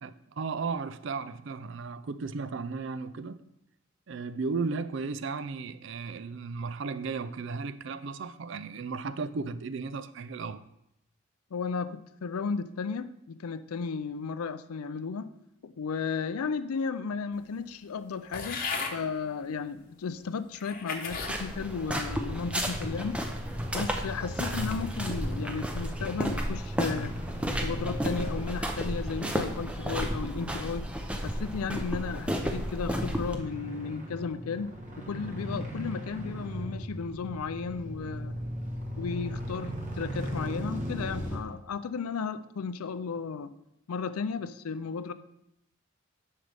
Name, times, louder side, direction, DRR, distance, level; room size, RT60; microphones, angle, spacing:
voice 1, 0.0-3.4 4.1-10.6, right 4 dB, 55° right, 0.4 m, -35 dB
voice 2, 11.5-15.3 15.6-18.6 18.9-23.2 23.7-27.1 27.6-30.9 31.2-38.4 39.0-43.5 43.9-45.1, left 5 dB, 85° left, 0.4 m, -34 dB
sound 1, 18.3-19.0 19.8-19.9 20.5-21.4 21.9-22.3, left 4 dB, 40° left, 1.0 m, -35 dB
sound 2, 21.1-33.3, equal, 5° right, 0.5 m, -33 dB
sound 3, 22.4-41.4, equal, 35° right, 1.3 m, -38 dB
9.7 x 6.6 x 3.4 m
head